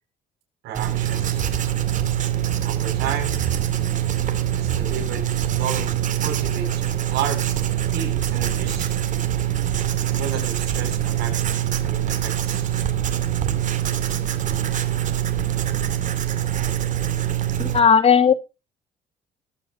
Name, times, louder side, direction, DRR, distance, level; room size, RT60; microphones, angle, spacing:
voice 1, 0.6-1.4 2.6-3.4 4.5-5.9 6.2-6.8 7.1-7.4 7.9-8.9 10.0-11.4 11.8-12.7, right 7 dB, 80° right, 2 dB, 7.2 m, -32 dB
Writing, 0.7-17.8, right 11 dB, 50° right, 2.4 m, -24 dB
voice 2, 17.6-18.3, left 6 dB, 35° left, 10 dB, 2.1 m, -15 dB
21.0 x 8.8 x 2.8 m, 0.29 s
cardioid pair, 110°, 17 cm